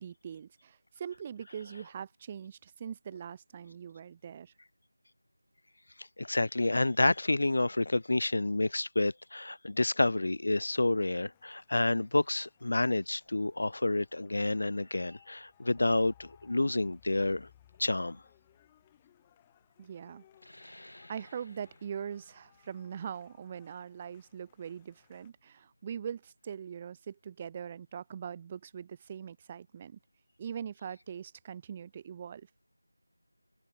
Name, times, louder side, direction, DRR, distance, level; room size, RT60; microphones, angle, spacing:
voice 1, 0.0-4.5 19.8-20.2 20.6-30.0 30.4-32.5, right 8 dB, 15° right, 0.7 m, -42 dB
voice 2, 6.0-17.5 17.8-18.2, left 2 dB, 50° left, 0.7 m, -29 dB
sound 1, 11.3-25.3, left 12 dB, 10° left, 2.3 m, -65 dB
sound 2, 20.3-25.5, left 1 dB, 75° left, 2.4 m, -57 dB
figure-of-eight pair, 170°, 0 cm